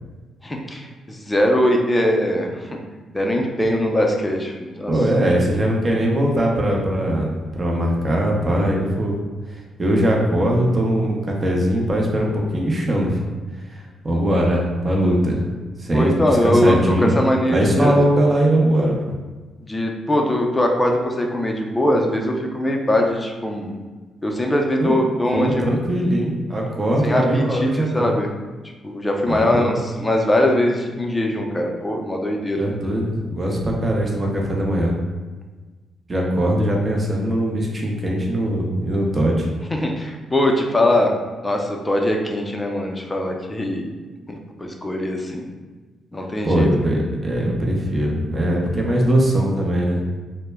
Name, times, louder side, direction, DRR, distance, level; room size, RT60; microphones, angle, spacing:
voice 1, 0.4-2.8 3.1-4.9 15.9-18.0 19.6-23.8 24.2-25.6 27.0-28.3 28.8-32.7 39.7-41.1 41.4-43.9 44.3-45.4 46.1-46.7, left 1 dB, 20° left, 1 dB, 0.5 m, -21 dB
voice 2, 4.9-9.2 9.5-13.2 13.7-15.5 15.8-17.2 17.5-18.9 24.8-24.9 25.3-28.2 29.3-29.8 32.6-35.0 36.1-39.5 46.4-50.0, right 1 dB, 35° right, -1 dB, 0.6 m, -20 dB
2.1 x 2.0 x 3.3 m, 1.3 s
supercardioid pair, 60°, 0 cm